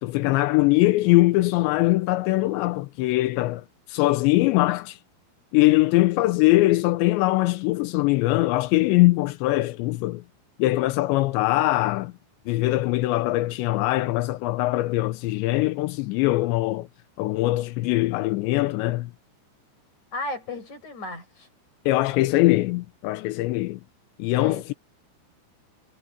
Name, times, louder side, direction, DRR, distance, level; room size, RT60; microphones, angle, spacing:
voice 1, 0.0-5.0 5.5-10.2 10.6-12.1 12.5-16.9 17.2-19.1 21.9-23.8 24.2-24.7, left 19 dB, 80° left, 2.7 m, -22 dB
voice 2, 20.1-21.5 24.4-24.8, left 2 dB, 35° left, 7.8 m, -35 dB
omnidirectional pair, 5.9 m